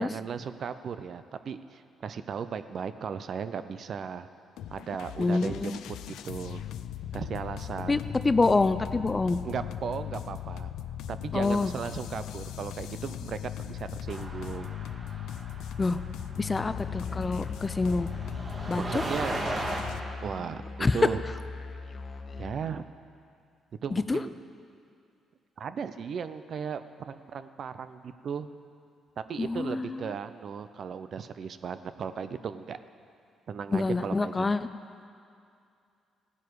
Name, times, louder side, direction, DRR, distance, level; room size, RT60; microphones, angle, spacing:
voice 1, 0.0-4.3 4.7-5.8 6.1-6.6 7.1-8.0 9.4-10.7 11.1-14.7 18.9-19.4 20.2-20.6 20.9-21.2 22.4-22.8 23.8-24.3 25.6-28.5 29.2-32.8 33.5-34.4, right 6 dB, 55° right, 11 dB, 0.6 m, -36 dB
sound 1, 4.6-20.0, left 10 dB, 85° left, 0.4 m, -39 dB
voice 2, 5.2-5.8 7.9-9.4 11.3-11.7 15.8-16.0 16.4-18.1 18.7-19.0 20.8-21.1 23.9-24.2 29.4-30.2 33.7-34.7, left 3 dB, 25° left, 12 dB, 0.5 m, -26 dB
sound 2, 14.1-19.8, right 2 dB, 30° right, 1.7 m, -38 dB
Musical instrument, 16.6-22.5, left 3 dB, 45° left, 1.0 m, -41 dB
16.5 x 9.8 x 4.8 m, 2.4 s
cardioid pair, 90°, 0 cm